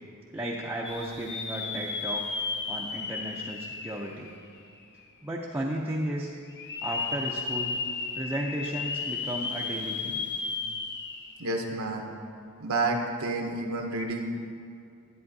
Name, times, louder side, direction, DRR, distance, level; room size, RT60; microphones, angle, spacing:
voice 1, 0.3-2.2 2.7-4.3 5.2-6.3 6.8-7.7 8.1-10.2, right 1 dB, 10° right, -3 dB, 0.5 m, -34 dB
sound 1, 0.8-4.8 5.3-5.4 6.5-11.4 11.8-11.9 13.9-14.0, left 4 dB, 50° left, 0.6 m, -34 dB
voice 2, 11.4-12.1 12.6-14.6, right 2 dB, 65° right, 2 dB, 0.7 m, -30 dB
11.0 x 8.5 x 2.7 m, 2.4 s
head